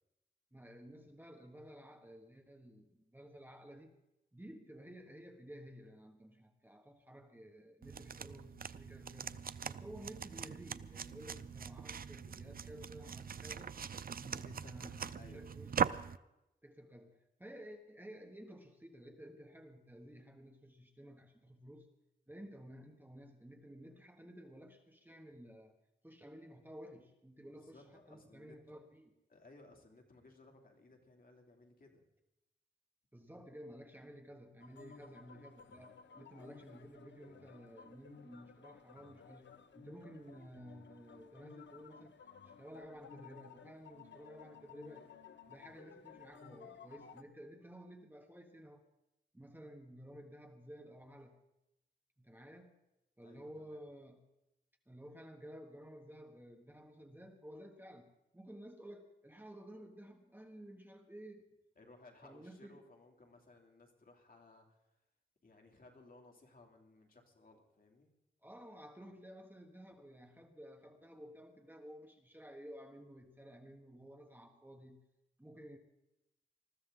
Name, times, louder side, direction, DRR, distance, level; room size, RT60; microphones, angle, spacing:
voice 1, 0.5-3.9 4.3-13.8 14.1-15.7 16.6-21.9 22.3-25.8 26.0-29.1 33.1-39.5 39.7-42.2 42.4-45.1 45.5-48.8 49.3-51.4 52.2-52.8 53.2-54.2 54.9-61.4 62.2-62.8 68.4-75.0 75.4-75.8, equal, 10° right, 4 dB, 1.3 m, -53 dB
sound 1, 7.8-16.2, right 7 dB, 50° right, 0.4 m, -41 dB
voice 2, 15.0-15.5 27.5-28.6 29.3-32.0 53.2-53.8 61.8-64.8 65.4-68.1, left 2 dB, 50° left, 1 dB, 2.8 m, -61 dB
sound 2, 34.6-47.2, left 6 dB, 75° left, 0.9 m, -57 dB
20.5 x 14.0 x 3.8 m, 0.90 s
wide cardioid pair, 115°, 19 cm